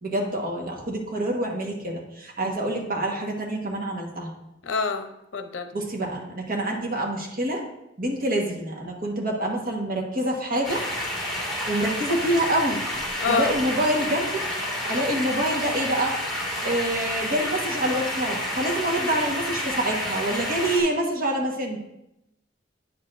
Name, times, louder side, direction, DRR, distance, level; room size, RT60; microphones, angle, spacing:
voice 1, 0.0-4.3 5.7-7.6 8.0-10.8 11.7-12.8 13.3-14.4 14.9-16.2 16.6-21.8, right 1 dB, 50° right, 0 dB, 1.3 m, -26 dB
voice 2, 4.6-5.7 13.2-13.6, left 5 dB, 75° left, 8 dB, 0.6 m, -27 dB
sound 1, 10.6-20.8, left 1 dB, ahead, 2.0 m, -30 dB
9.2 x 6.5 x 2.5 m, 0.85 s
head